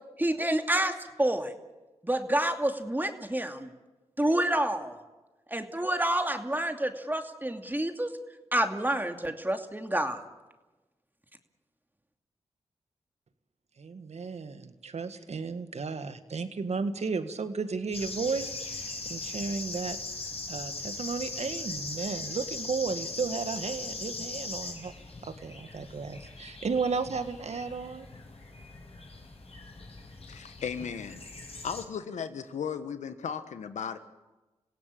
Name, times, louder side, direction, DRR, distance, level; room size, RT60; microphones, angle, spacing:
voice 1, 0.2-1.5 2.0-3.7 4.2-4.9 5.5-8.1 8.5-10.2, right 1 dB, 15° right, 5 dB, 2.6 m, -28 dB
voice 2, 13.8-20.0 20.5-24.9 25.2-28.1, right 4 dB, 65° right, 9 dB, 1.8 m, -34 dB
sound 1, 17.9-31.8, left 3 dB, 55° left, 6.1 m, -40 dB
voice 3, 30.3-31.2 31.6-34.0, left 7 dB, 85° left, 10 dB, 1.3 m, -36 dB
27.0 x 16.5 x 8.8 m, 1.2 s
cardioid pair, 45°, 12 cm